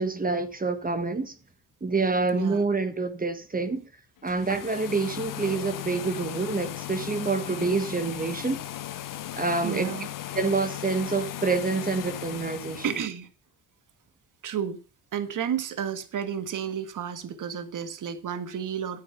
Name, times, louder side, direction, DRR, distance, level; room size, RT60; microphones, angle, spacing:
voice 1, 0.0-1.3 1.8-3.9 4.2-8.6 9.3-9.9 10.3-12.8, right 4 dB, 25° right, 1.6 m, -27 dB
voice 2, 2.3-2.6 9.6-10.1 12.8-13.3 14.4-14.8 15.1-19.0, right 8 dB, 55° right, 1.6 m, -31 dB
sound 1, 4.2-13.1, left 12 dB, 60° left, 1.0 m, -37 dB
10.0 x 8.4 x 5.6 m
supercardioid pair, 60°, 36 cm